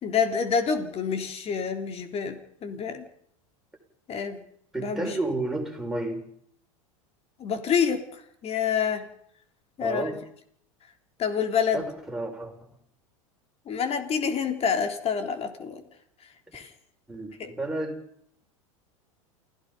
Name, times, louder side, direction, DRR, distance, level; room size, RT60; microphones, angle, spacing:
voice 1, 0.0-3.1 4.1-4.4 4.8-5.1 7.4-9.1 9.8-10.2 11.2-11.8 13.7-15.8 16.5-16.7 17.4-17.5, left 6 dB, 35° left, 7 dB, 3.6 m, -27 dB
voice 2, 4.7-6.3 9.8-10.2 11.7-12.5 16.5-16.6 17.1-18.0, right 2 dB, 5° right, 0 dB, 6.6 m, -31 dB
28.5 x 17.0 x 5.5 m, 0.69 s
hypercardioid pair, 95°, 18 cm